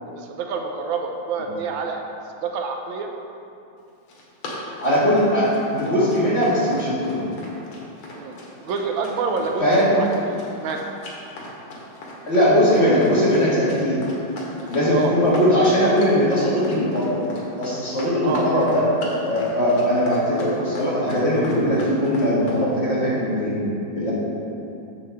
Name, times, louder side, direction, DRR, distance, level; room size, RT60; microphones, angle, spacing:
voice 1, 0.1-2.0 2.4-3.1 8.2-10.8 14.9-15.1 18.2-18.6, right 4 dB, 80° right, 3 dB, 1.4 m, -27 dB
Run, 3.9-22.6, left 2 dB, 90° left, 2.0 m, -38 dB
voice 2, 4.8-7.2 9.6-9.9 12.3-14.0 14.7-17.2 17.6-18.9 19.2-23.6 23.9-24.1, equal, 35° left, -9 dB, 2.1 m, -20 dB
7.6 x 7.0 x 3.5 m, 2.6 s
omnidirectional pair, 2.1 m